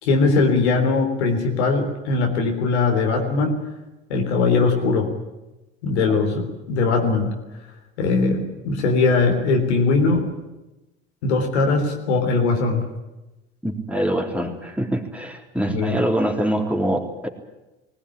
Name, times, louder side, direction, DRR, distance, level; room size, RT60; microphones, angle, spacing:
voice 1, 0.0-3.6 4.1-5.1 5.8-7.3 8.0-10.3 11.2-12.8 15.7-16.0, left 3 dB, 85° left, 3 dB, 3.7 m, -20 dB
voice 2, 13.6-17.3, right 1 dB, 5° right, 2 dB, 3.7 m, -24 dB
20.0 x 18.0 x 10.0 m, 1.0 s
hypercardioid pair, 75°, 32 cm